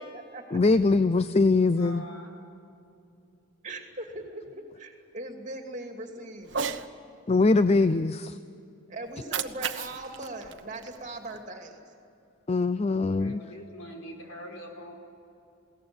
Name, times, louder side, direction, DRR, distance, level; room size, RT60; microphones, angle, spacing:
voice 1, 0.0-0.6 3.6-6.8 8.9-11.8, right 2 dB, 35° right, 3 dB, 2.6 m, -40 dB
voice 2, 0.5-2.0 7.3-8.4 12.5-13.4, left 3 dB, 30° left, 12 dB, 0.4 m, -22 dB
voice 3, 1.8-2.3 12.9-14.9, equal, 80° left, 2 dB, 4.8 m, -44 dB
Cat, 6.4-6.9 9.1-11.4, right 6 dB, 60° right, 1.0 m, -35 dB
21.5 x 18.0 x 9.6 m, 2.7 s
head